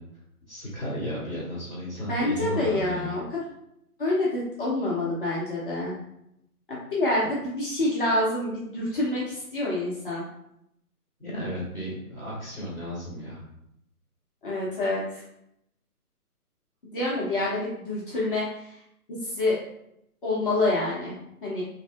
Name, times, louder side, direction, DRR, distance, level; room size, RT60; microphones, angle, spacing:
voice 1, 0.5-3.0 11.2-13.4, equal, 5° right, -16 dB, 1.0 m, -34 dB
voice 2, 2.1-3.4 4.0-5.9 6.7-10.2 14.4-15.2 16.9-18.8 19.2-19.6 20.2-21.6, left 2 dB, 35° left, -6 dB, 0.8 m, -27 dB
3.9 x 2.8 x 2.3 m, 0.78 s
figure-of-eight pair, 150°, 46 cm